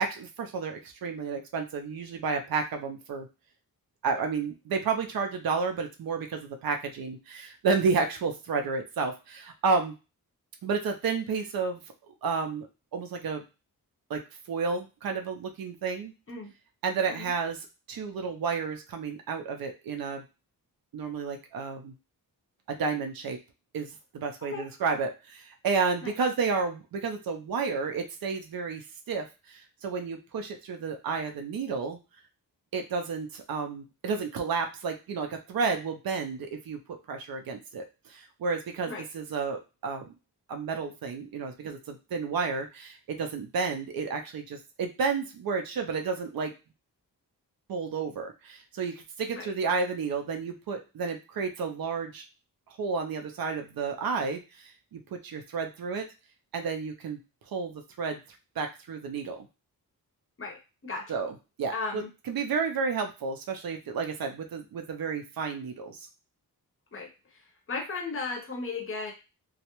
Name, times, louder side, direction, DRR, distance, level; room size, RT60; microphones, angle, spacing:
voice 1, 0.0-3.3 4.0-9.9 10.6-11.8 12.2-12.7 12.9-13.4 14.1-14.2 14.5-16.1 16.8-17.6 17.9-20.2 20.9-21.9 22.7-23.4 23.7-32.0 32.7-36.8 37.1-40.1 40.5-46.5 47.7-52.2 52.8-56.1 56.5-57.2 57.5-58.2 58.6-59.5 61.1-66.0, right 5 dB, 70° right, 4 dB, 0.5 m, -31 dB
voice 2, 60.4-61.1 61.7-62.1 66.9-69.1, left 3 dB, 35° left, 1 dB, 0.6 m, -36 dB
2.2 x 2.0 x 2.9 m, 0.29 s
wide cardioid pair, 175°, 36 cm